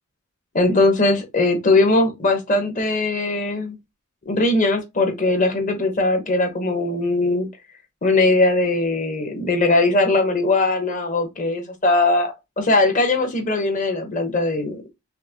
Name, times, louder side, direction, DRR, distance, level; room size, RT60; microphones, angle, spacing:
voice 1, 0.5-3.7 4.3-7.5 8.0-14.9, left 2 dB, 35° left, 1.0 m, -20 dB
5.7 x 2.1 x 2.8 m
head